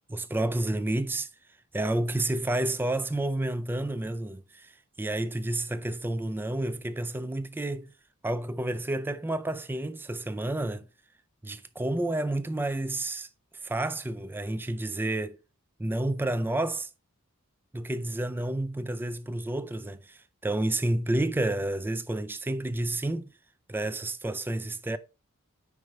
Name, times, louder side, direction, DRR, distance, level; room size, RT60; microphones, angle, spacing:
voice 1, 0.1-1.3 1.7-7.9 8.2-10.9 11.4-13.3 13.6-15.4 15.8-16.9 17.7-23.3 23.7-25.0, right 1 dB, 10° right, 0.4 m, -30 dB
5.2 x 4.7 x 5.1 m
head